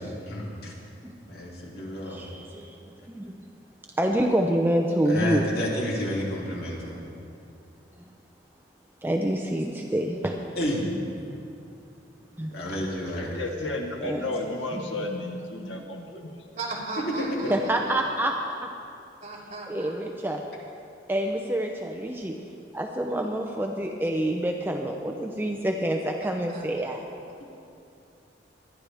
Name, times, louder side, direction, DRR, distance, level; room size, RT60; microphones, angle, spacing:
voice 1, 0.3-0.7 1.3-2.2 5.1-7.0 10.6-10.9 12.5-13.4 17.1-17.5, equal, 60° left, -4 dB, 3.0 m, -30 dB
voice 2, 2.1-2.8 3.1-3.3 4.0-5.4 9.0-10.3 10.9-11.0 12.4-12.6 14.0-14.3 17.5-18.7 19.7-20.4 21.1-22.4 22.7-27.0, right 1 dB, 10° right, 2 dB, 0.6 m, -27 dB
voice 3, 13.2-16.5, left 2 dB, 90° left, 2 dB, 1.5 m, -33 dB
voice 4, 16.6-18.0 19.2-19.9 26.5-26.9, right 2 dB, 40° right, -5 dB, 3.1 m, -37 dB
22.0 x 11.0 x 3.5 m, 2.5 s
head